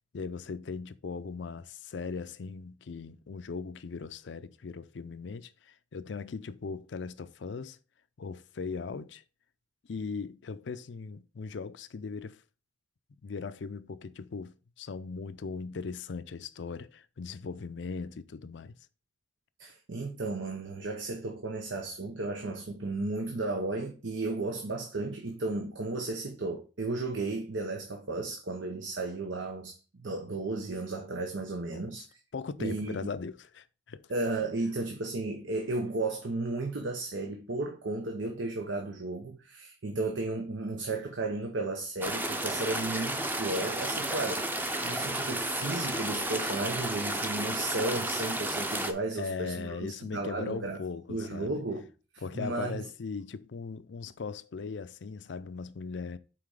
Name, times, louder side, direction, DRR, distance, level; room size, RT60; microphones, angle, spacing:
voice 1, 0.1-7.8 8.2-9.2 9.9-12.4 13.2-18.7 31.7-31.9 32.3-34.1 49.1-51.6 52.2-56.2, left 4 dB, 70° left, 0.5 m, -39 dB
voice 2, 19.6-32.2 32.6-33.1 34.1-44.5 44.8-50.8 51.1-51.9 52.3-52.8, right 2 dB, 85° right, 0.9 m, -34 dB
sound 1, 42.0-48.9, right 1 dB, 10° right, 0.6 m, -32 dB
5.9 x 4.1 x 4.8 m
head